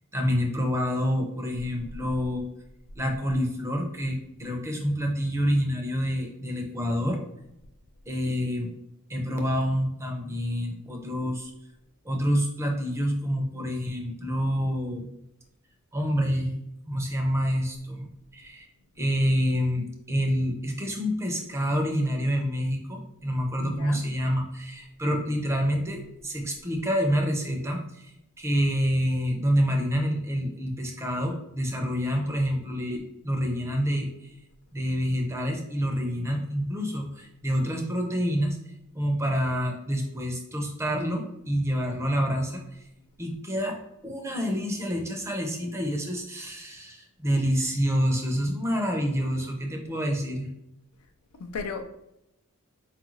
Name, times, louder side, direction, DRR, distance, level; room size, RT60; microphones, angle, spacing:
voice 1, 0.1-2.5 3.0-7.2 8.1-8.7 9.1-11.5 12.0-15.1 15.9-16.6 16.9-18.7 19.0-34.1 34.7-38.6 38.9-42.6 43.2-43.8 44.0-50.5, equal, 15° right, 2 dB, 0.5 m, -27 dB
voice 2, 23.6-24.0 51.4-51.8, left 4 dB, 85° left, 6 dB, 0.4 m, -34 dB
4.3 x 2.4 x 3.1 m, 0.84 s
head